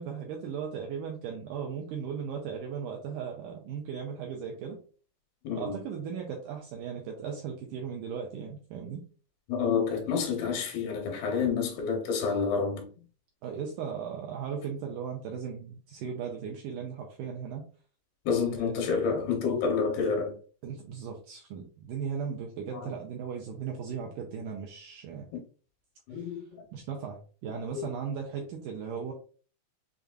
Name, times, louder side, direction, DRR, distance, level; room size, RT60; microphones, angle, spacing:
voice 1, 0.0-4.8 5.6-9.0 13.4-17.6 18.5-18.8 20.6-25.3 26.1-26.4 26.7-29.1, right 7 dB, 85° right, 1.9 m, -37 dB
voice 2, 5.4-5.8 9.5-12.9 18.3-20.4 22.7-22.8 26.1-26.4 27.7-27.9, left 5 dB, 85° left, 3.0 m, -29 dB
6.6 x 2.5 x 2.3 m
omnidirectional pair, 4.3 m